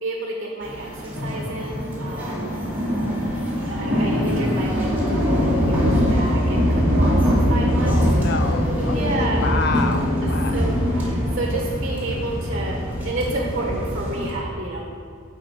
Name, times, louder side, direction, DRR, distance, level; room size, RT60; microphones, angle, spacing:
voice 1, 0.0-2.5 3.6-8.0 8.8-9.5 10.5-14.9, right 2 dB, 45° right, -1 dB, 1.3 m, -30 dB
sound 1, 0.6-14.3, equal, 10° right, 2.1 m, -22 dB
voice 2, 7.8-10.5, left 4 dB, 55° left, 8 dB, 0.6 m, -29 dB
11.0 x 4.4 x 8.0 m, 2.3 s
head